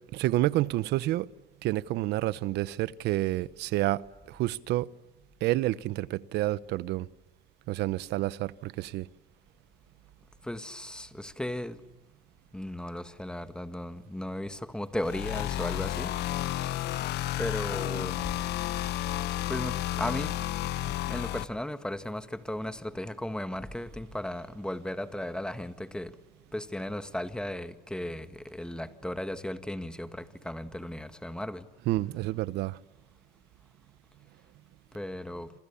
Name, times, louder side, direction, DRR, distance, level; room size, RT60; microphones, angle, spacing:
voice 1, 0.1-1.3 1.6-4.9 5.4-7.1 7.7-9.1 31.9-32.8, right 16 dB, 85° right, 1.0 m, -29 dB
voice 2, 10.4-11.8 12.5-16.1 17.4-18.3 19.2-20.4 20.9-26.1 26.5-31.7 34.9-35.5, left 1 dB, 5° left, 1.8 m, -36 dB
sound 1, 15.0-21.4, left 14 dB, 80° left, 1.3 m, -31 dB
28.0 x 27.5 x 7.1 m
cardioid pair, 110°, 17 cm